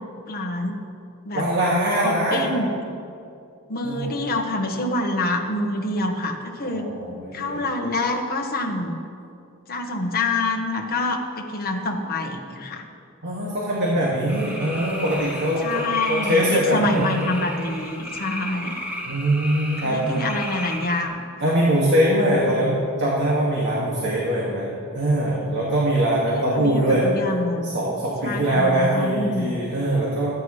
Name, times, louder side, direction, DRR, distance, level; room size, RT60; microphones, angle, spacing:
voice 1, 0.3-0.8 1.2-1.5 1.9-2.7 3.7-6.9 7.3-9.0 9.7-12.9 15.6-18.8 19.8-21.2 26.3-27.8 28.2-29.6, left 2 dB, 45° left, 2 dB, 1.4 m, -26 dB
voice 2, 1.3-2.5 3.8-4.1 6.6-7.7 13.2-17.3 19.1-20.3 21.4-27.1 27.6-30.3, right 1 dB, 55° right, -5 dB, 2.1 m, -22 dB
sound 1, 14.3-21.0, equal, 10° right, 1.7 m, -34 dB
24.0 x 10.0 x 3.3 m, 2.5 s
head